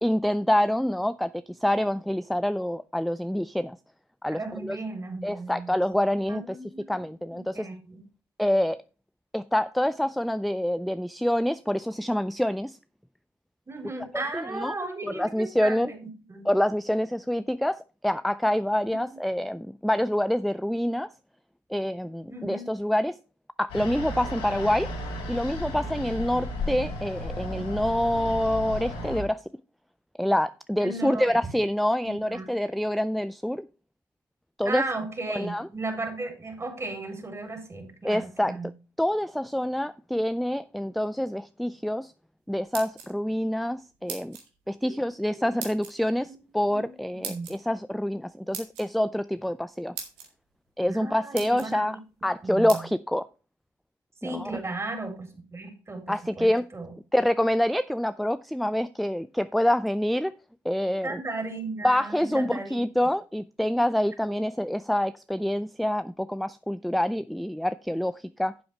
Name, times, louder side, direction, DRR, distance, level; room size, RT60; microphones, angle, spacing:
voice 1, 0.0-3.8 4.2-4.8 5.2-6.6 6.9-7.7 8.4-8.8 9.3-12.8 14.1-14.7 15.0-15.9 16.5-21.1 21.7-23.2 23.6-24.9 25.3-29.4 30.2-33.7 34.6-34.8 35.3-35.7 38.0-38.6 39.0-42.1 42.5-44.4 44.7-49.9 50.8-52.0 52.2-53.2 54.2-54.6 56.1-56.7 57.1-60.3 60.6-61.2 61.8-68.5, left 1 dB, ahead, 0.4 m, -26 dB
voice 2, 4.3-5.7 6.3-7.0 7.3-8.0 13.7-16.0 16.3-16.5 18.9-19.0 22.3-22.7 30.8-31.5 32.0-32.5 34.7-38.7 44.8-45.0 45.3-45.5 46.3-46.4 46.7-46.9 47.1-47.5 50.8-52.0 52.4-52.8 54.2-56.9 60.9-62.8, right 3 dB, 30° right, 3.8 m, -35 dB
sound 1, 23.7-29.2, left 1 dB, 80° left, 4.9 m, -34 dB
sound 2, 42.5-43.4 44.1-44.5 45.6-45.9 47.2-47.6 48.5-48.9 49.6-49.7 50.0-50.3 50.9-51.0 51.3-51.7 52.7-52.8, right 7 dB, 85° right, 2.0 m, -38 dB
10.5 x 7.7 x 3.3 m
hypercardioid pair, 55°, 10 cm